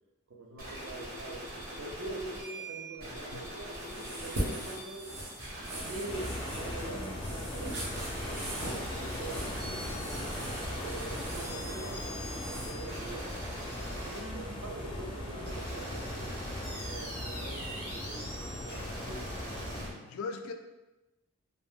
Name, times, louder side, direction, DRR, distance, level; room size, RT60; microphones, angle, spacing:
voice 1, 0.3-5.1 5.6-10.2 10.8-13.2 13.9-19.3, right 2 dB, 60° right, 0 dB, 0.5 m, -44 dB
sound 1, 0.6-19.8, right 1 dB, 45° right, 0.9 m, -43 dB
sound 2, 3.7-12.7, equal, 80° right, 1.0 m, -41 dB
sound 3, 6.1-19.9, left 1 dB, 25° left, 0.5 m, -39 dB
voice 2, 19.8-20.5, left 4 dB, 85° left, 7 dB, 0.3 m, -40 dB
2.6 x 2.0 x 3.5 m, 1.0 s
head